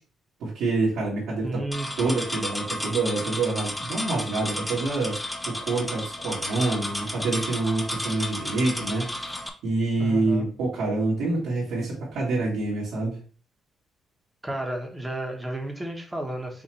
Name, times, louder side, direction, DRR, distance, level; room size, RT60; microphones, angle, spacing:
voice 1, 0.4-1.6 2.0-13.2, right 3 dB, 85° right, -9 dB, 2.0 m, -27 dB
voice 2, 1.4-1.9 10.0-10.5 14.4-16.6, right 1 dB, 10° right, 2 dB, 1.3 m, -32 dB
sound 1, 1.7-9.5, left 1 dB, 10° left, 0.7 m, -33 dB
5.6 x 2.8 x 3.0 m, 0.37 s
cardioid pair, 90°, 0 cm